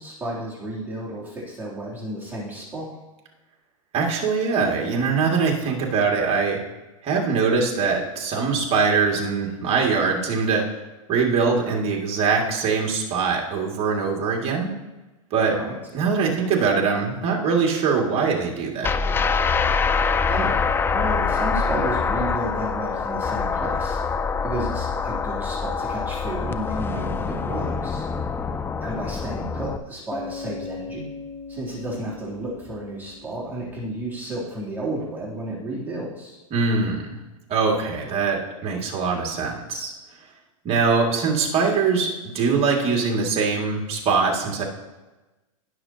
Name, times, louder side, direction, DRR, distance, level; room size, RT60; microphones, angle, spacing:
voice 1, 0.0-2.9 15.4-15.8 19.8-24.0 24.4-28.1 28.8-31.1 31.5-36.4, right 1 dB, 10° right, -7 dB, 3.2 m, -32 dB
voice 2, 3.9-6.7 7.0-10.7 11.1-14.7 15.3-15.6 15.9-18.9 36.5-37.2 37.5-39.9 40.6-44.6, right 5 dB, 35° right, -1 dB, 2.4 m, -22 dB
sound 1, 18.8-29.8, left 5 dB, 10° left, 0.4 m, -25 dB
Bass guitar, 30.1-33.9, left 5 dB, 35° left, 1.9 m, -39 dB
19.0 x 6.4 x 2.9 m, 1.1 s
hypercardioid pair, 125°, 18 cm